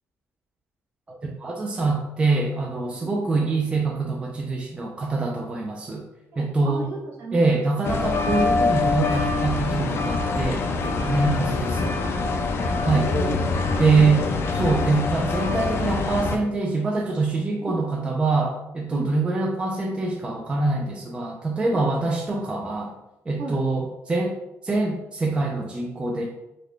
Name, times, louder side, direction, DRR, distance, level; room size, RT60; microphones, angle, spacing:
voice 1, 1.1-6.0 6.4-6.8 7.3-11.9 12.8-13.1 13.8-22.9 23.3-24.4 24.6-26.3, right 3 dB, 20° right, 0 dB, 0.4 m, -24 dB
voice 2, 3.0-3.5 4.8-4.9 6.3-7.4 10.3-10.6 11.2-11.4 12.6-12.8 13.0-14.3 17.6-17.7 18.9-19.1 21.7-22.1 23.4-23.6, right 1 dB, 55° right, -2 dB, 1.0 m, -35 dB
sound 1, 7.8-16.4, left 3 dB, 50° left, 0.4 m, -24 dB
3.9 x 2.2 x 3.2 m, 0.93 s
cardioid pair, 130°, 5 cm